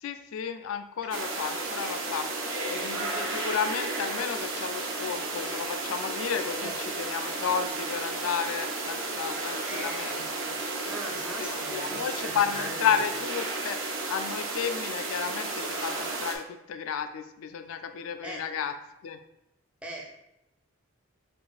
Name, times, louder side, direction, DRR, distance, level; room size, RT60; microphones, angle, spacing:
voice 1, 0.0-10.6 11.4-18.7 19.0-19.2, left 7 dB, 70° left, 9 dB, 0.3 m, -32 dB
sound 1, 1.1-16.4, right 3 dB, 60° right, 0.5 m, -33 dB
voice 2, 9.7-10.3 10.8-12.9 18.2-18.4 19.8-20.1, right 1 dB, 5° right, -1 dB, 0.4 m, -40 dB
5.1 x 2.5 x 2.4 m, 0.88 s
head